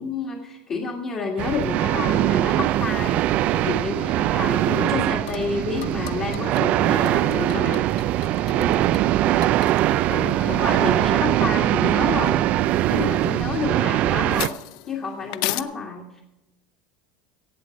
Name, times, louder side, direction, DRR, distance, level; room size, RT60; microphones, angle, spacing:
voice 1, 0.0-7.8 8.6-8.7 10.1-12.4 12.9-14.5 14.9-16.2, left 4 dB, 30° left, -2 dB, 1.9 m, -29 dB
sound 1, 1.4-14.5, right 14 dB, 35° right, 0.3 m, -21 dB
sound 2, 5.3-15.6, left 16 dB, 65° left, 0.6 m, -38 dB
voice 2, 8.2-9.6, right 7 dB, 60° right, 6 dB, 1.7 m, -38 dB
16.0 x 8.3 x 5.2 m, 0.94 s
cardioid pair, 170°, 4 cm